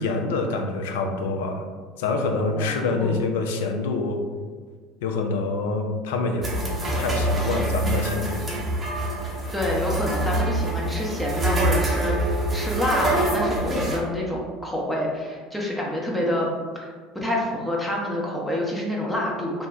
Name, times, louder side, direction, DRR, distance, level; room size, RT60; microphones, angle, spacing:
voice 1, 0.0-1.6 2.0-4.2 5.0-6.5 6.9-8.5, left 3 dB, 75° left, 4 dB, 0.3 m, -26 dB
voice 2, 2.6-3.2 9.5-19.7, left 1 dB, 5° left, -4 dB, 0.6 m, -27 dB
sound 1, 6.4-14.0, right 1 dB, 25° right, 0.8 m, -25 dB
2.4 x 2.1 x 3.8 m, 1.6 s
hypercardioid pair, 70°, 0 cm